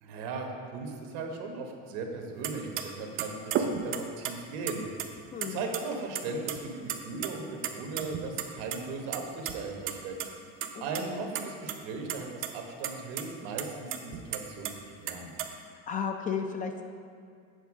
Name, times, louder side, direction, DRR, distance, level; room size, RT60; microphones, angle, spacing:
voice 1, 0.0-4.9 5.5-10.2 10.8-14.7 15.0-15.3, right 4 dB, 80° right, 2 dB, 1.3 m, -37 dB
sound 1, 2.4-2.5 2.8-2.9 3.2-4.3 4.7-5.5 5.7-5.8 6.1-6.6 6.8-7.3 7.6-8.8 9.1-9.5 9.9-10.0 10.2-10.3 10.6-11.0 11.3-11.8 12.1-12.5 12.8-12.9 13.2-13.3 13.6-14.7 15.1-15.5, right 9 dB, 40° right, 0.6 m, -32 dB
voice 2, 5.3-5.7 10.7-11.3 15.9-16.8, left 6 dB, 25° left, 5 dB, 0.4 m, -34 dB
8.1 x 4.4 x 6.0 m, 2.3 s
cardioid pair, 160°, 32 cm